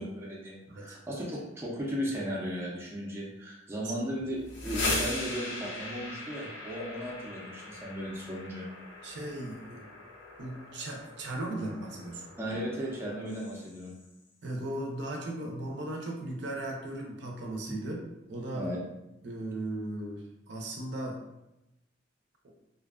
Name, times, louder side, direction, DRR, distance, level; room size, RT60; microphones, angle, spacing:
voice 1, 0.0-8.7 12.4-13.9 18.6-18.8, equal, 15° right, -4 dB, 0.4 m, -36 dB
voice 2, 0.7-1.0 3.8-3.9 9.0-9.9 10.4-12.2 14.4-18.0 18.3-18.7 19.2-21.2, right 1 dB, 65° right, 0 dB, 0.5 m, -37 dB
sound 1, 4.3-14.1, left 2 dB, 75° left, 0.6 m, -39 dB
2.4 x 2.2 x 2.3 m, 0.90 s
head